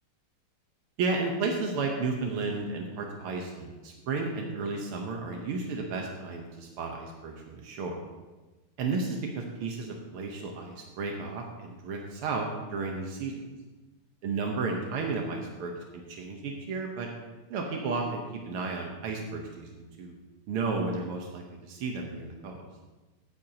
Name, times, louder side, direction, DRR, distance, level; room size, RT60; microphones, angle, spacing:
voice 1, 1.0-8.0 8.8-13.5 14.2-17.1 17.5-20.1 20.5-22.6, right 4 dB, 85° right, 1 dB, 2.0 m, -33 dB
15.5 x 8.7 x 2.9 m, 1.2 s
omnidirectional pair, 2.4 m